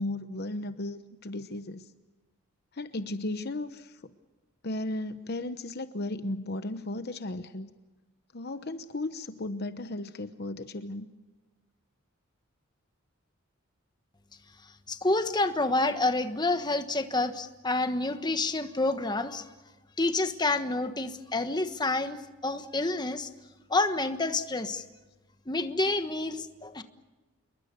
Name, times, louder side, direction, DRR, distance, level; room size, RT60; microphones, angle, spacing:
voice 1, 0.0-1.9 2.7-4.1 4.6-7.7 8.3-11.1, left 2 dB, 50° left, 11 dB, 1.0 m, -35 dB
voice 2, 14.9-19.5 20.0-22.2 22.4-23.3 23.7-24.8 25.5-26.8, left 2 dB, 20° left, 9 dB, 1.3 m, -28 dB
27.5 x 22.5 x 6.9 m, 1.2 s
head